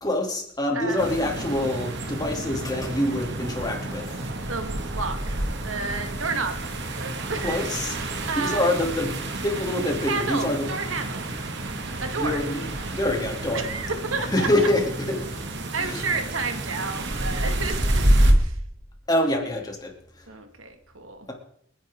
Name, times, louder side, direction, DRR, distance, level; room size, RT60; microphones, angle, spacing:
voice 1, 0.0-4.2 7.4-10.7 12.2-12.6 12.9-13.7 14.2-15.4 15.8-16.1 19.1-20.3, left 1 dB, 20° left, 1 dB, 2.8 m, -26 dB
sound 1, 1.0-18.3, right 1 dB, 60° right, 2.0 m, -28 dB
voice 2, 4.5-6.6 7.0-7.6 8.3-8.6 10.1-11.3 12.0-12.4 13.5-14.5 15.7-18.0 18.4-18.6 20.3-21.3, right 4 dB, 85° right, 6 dB, 2.0 m, -31 dB
28.5 x 10.5 x 3.7 m, 0.69 s
head